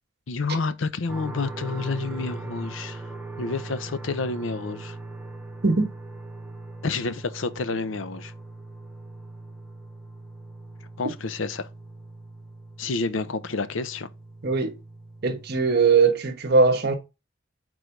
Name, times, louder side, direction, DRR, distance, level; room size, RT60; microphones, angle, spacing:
voice 1, 0.3-3.0 3.4-5.0 6.8-8.3 11.0-11.7 12.8-14.1, left 4 dB, 85° left, 0.7 m, -29 dB
sound 1, 1.1-15.9, right 2 dB, 5° right, 1.0 m, -40 dB
voice 2, 14.4-14.7 15.2-16.9, right 4 dB, 55° right, 1.1 m, -20 dB
4.8 x 3.9 x 5.8 m
head